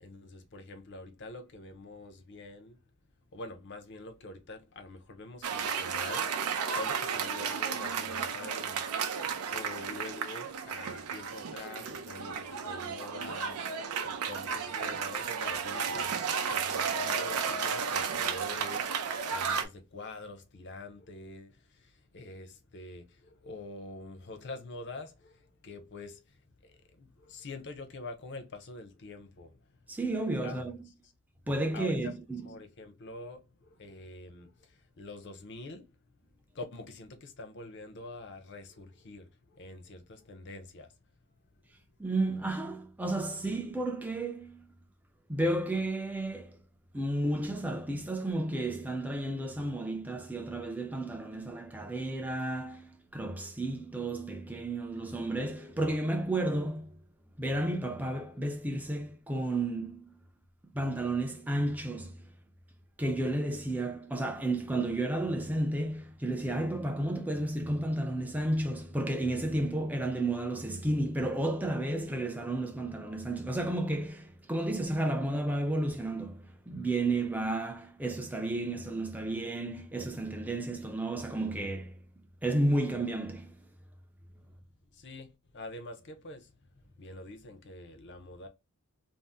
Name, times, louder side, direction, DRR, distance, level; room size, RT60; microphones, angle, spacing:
voice 1, 0.0-2.8 3.3-8.8 9.2-29.6 30.4-30.6 31.7-32.1 32.4-35.9 36.5-40.9 84.9-88.5, left 2 dB, 50° left, 0.6 m, -46 dB
Cheering / Applause, 5.4-19.6, right 6 dB, 80° right, 0.5 m, -33 dB
voice 2, 29.9-30.9 31.5-32.4 42.0-44.6 45.3-46.6 46.9-57.0 57.4-60.1 60.7-62.2 63.0-81.9 82.4-83.5, right 1 dB, 5° right, 0.4 m, -32 dB
2.6 x 2.0 x 3.3 m
head